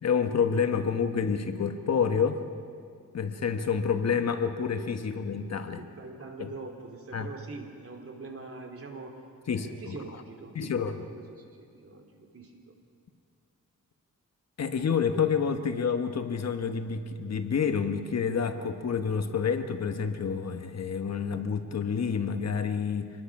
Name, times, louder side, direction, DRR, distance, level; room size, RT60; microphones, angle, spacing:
voice 1, 0.0-2.4 3.1-5.8 6.4-6.5 7.1-7.3 9.5-9.9 10.5-11.0 14.6-23.1, left 6 dB, 55° left, 8 dB, 1.3 m, -28 dB
voice 2, 5.8-9.2 9.5-12.7, right 3 dB, 45° right, 3 dB, 3.1 m, -44 dB
26.5 x 21.0 x 6.1 m, 2.3 s
wide cardioid pair, 130°, 31 cm